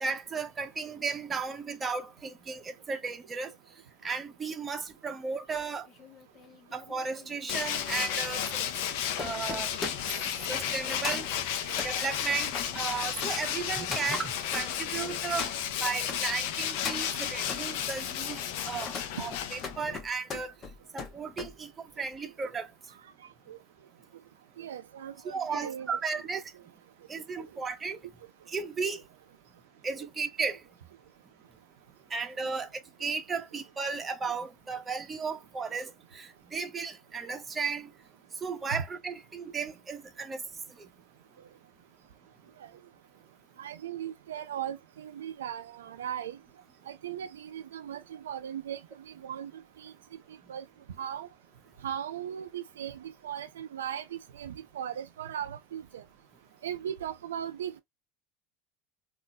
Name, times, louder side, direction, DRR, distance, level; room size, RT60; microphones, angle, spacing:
voice 1, 0.0-3.5 4.0-5.9 6.7-8.6 9.2-9.7 10.5-11.3 11.8-15.5 15.8-18.4 18.7-20.5 20.9-22.7 25.2-26.4 27.1-28.0 28.5-29.0 29.8-30.6 32.1-32.7 33.0-37.9 38.4-40.4 40.8-40.9, right 5 dB, 25° right, 0.9 m, -34 dB
sound 1, 5.6-16.2 16.6-17.7 18.2-21.5 21.9-22.2, left 5 dB, 40° left, 1.2 m, -41 dB
Tools, 7.5-20.0, left 9 dB, 70° left, 0.6 m, -33 dB
voice 2, 24.6-26.0 38.7-38.8 42.6-42.7 43.6-46.4 46.9-48.8 49.2-49.5 49.8-49.9 50.5-50.6 51.0-51.3 51.8-56.0 56.6-57.8, right 9 dB, 90° right, 0.3 m, -38 dB
3.7 x 2.5 x 2.3 m
hypercardioid pair, 85°, 0 cm